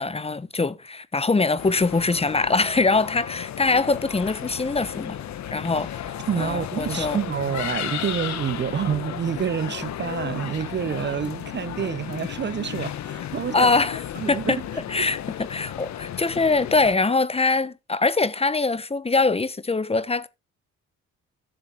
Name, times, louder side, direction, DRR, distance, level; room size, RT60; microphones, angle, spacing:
voice 1, 0.0-5.2 5.5-7.2 13.5-14.0 14.3-14.6 14.9-15.2 15.5-20.3, left 3 dB, 20° left, 1.0 m, -23 dB
sound 1, 1.6-16.9, left 10 dB, 65° left, 1.1 m, -34 dB
voice 2, 6.3-13.7 14.2-14.6 15.0-15.1, right 8 dB, 35° right, 0.5 m, -28 dB
12.5 x 6.9 x 3.6 m
cardioid pair, 90°, 30 cm